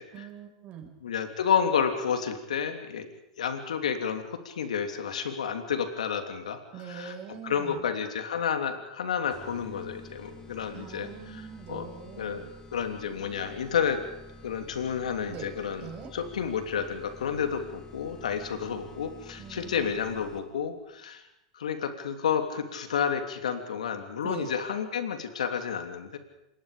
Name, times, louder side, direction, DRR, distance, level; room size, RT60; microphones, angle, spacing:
voice 1, 0.1-0.9 6.7-7.8 10.7-12.5 15.3-15.5 15.8-16.1 19.4-20.0 24.2-24.5, right 7 dB, 35° right, 4 dB, 6.2 m, -43 dB
voice 2, 1.0-3.1 3.4-7.1 7.4-11.4 11.7-11.9 12.2-14.0 14.4-21.2 21.5-26.2, left 7 dB, 85° left, 7 dB, 3.1 m, -30 dB
sound 1, 9.3-20.7, left 1 dB, 20° left, 4.5 m, -49 dB
27.0 x 21.0 x 5.2 m, 0.90 s
hypercardioid pair, 115°, 4 cm